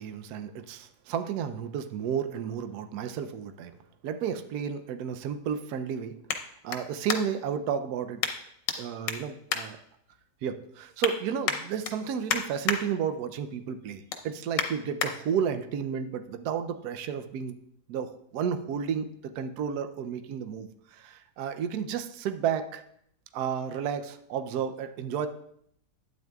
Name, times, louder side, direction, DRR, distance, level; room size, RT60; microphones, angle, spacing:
voice 1, 0.0-3.7 4.0-8.2 8.8-9.8 10.4-17.5 17.9-19.1 19.3-22.8 23.3-25.3, right 8 dB, 70° right, 8 dB, 1.1 m, -32 dB
sound 1, 3.4-7.6 8.2-8.8 9.0-10.4 10.7-11.1 11.4-12.8 13.2-13.5 13.8-15.1 15.7-15.8, left 7 dB, 80° left, 1.5 m, -33 dB
12.0 x 9.1 x 2.3 m, 0.71 s
omnidirectional pair, 1.9 m